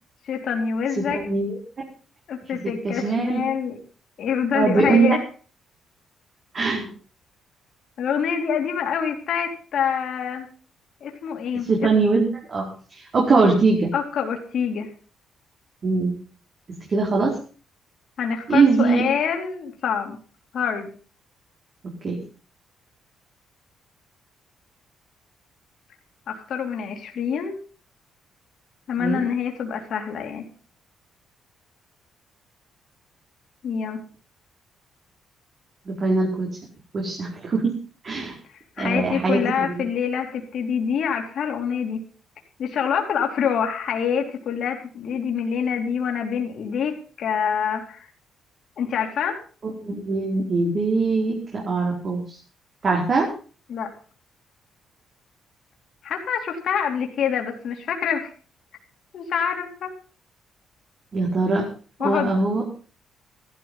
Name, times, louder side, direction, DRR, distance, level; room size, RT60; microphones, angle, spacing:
voice 1, 0.2-1.2 2.3-3.8 4.2-5.2 8.0-10.5 11.0-11.9 13.9-14.9 18.2-20.2 20.5-20.9 26.3-27.6 28.9-30.4 33.6-34.0 38.8-42.0 42.6-48.1 48.8-49.4 53.7-53.9 56.0-58.3 59.1-59.9 62.0-62.4, left 7 dB, 65° left, 2 dB, 2.9 m, -26 dB
voice 2, 1.1-1.6 2.8-3.4 4.5-5.2 6.5-6.9 11.7-13.9 15.8-16.1 16.9-17.3 18.5-19.0 21.8-22.2 29.0-29.3 35.9-36.5 36.9-37.6 38.0-38.3 38.8-39.7 49.8-52.2 52.8-53.3 61.1-61.6 62.0-62.6, right 3 dB, 45° right, -2 dB, 4.7 m, -21 dB
14.5 x 12.5 x 5.7 m, 0.40 s
cardioid pair, 90°, 0 cm